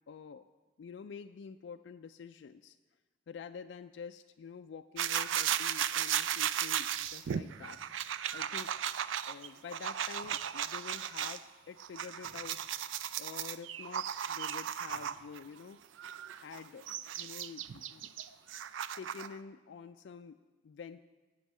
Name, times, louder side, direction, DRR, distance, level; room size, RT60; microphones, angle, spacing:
voice 1, 0.1-0.5 0.8-2.8 3.3-7.8 8.3-8.7 9.3-12.6 13.2-15.8 16.3-18.1 19.0-20.4 20.6-21.0, left 6 dB, 65° left, 7 dB, 0.3 m, -48 dB
sound 1, 5.0-11.4 11.8-15.4 16.0-19.4, right 9 dB, 80° right, 0.4 m, -36 dB
sound 2, 8.3-9.5 10.2-11.7 12.2-13.6 14.9-15.4, right 1 dB, 25° right, 1.0 m, -63 dB
10.0 x 6.4 x 8.1 m, 1.3 s
head